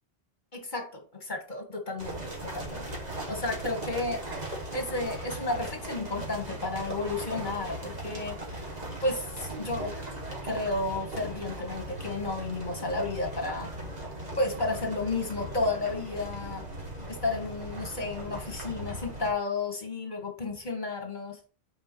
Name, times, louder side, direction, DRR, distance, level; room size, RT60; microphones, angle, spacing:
voice 1, 0.5-3.0 3.3-4.2 4.7-8.6 9.0-9.9 10.4-13.7 14.4-16.6 17.1-21.4, left 2 dB, 45° left, 1.8 m, -32 dB
sound 1, 2.0-19.3, right 1 dB, 40° right, 2.0 m, -38 dB
8.9 x 4.9 x 3.0 m
omnidirectional pair, 1.1 m